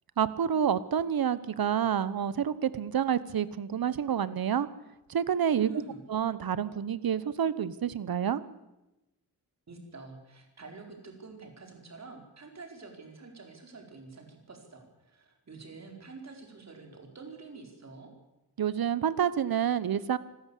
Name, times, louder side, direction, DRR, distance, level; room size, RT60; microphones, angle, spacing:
voice 1, 0.2-4.7 5.1-5.7 6.1-8.4 18.6-20.2, right 8 dB, 60° right, 16 dB, 1.1 m, -28 dB
voice 2, 5.5-6.0 9.7-18.1, right 3 dB, 40° right, 3 dB, 4.6 m, -47 dB
27.0 x 13.5 x 8.4 m, 0.98 s
wide cardioid pair, 155°, 40 cm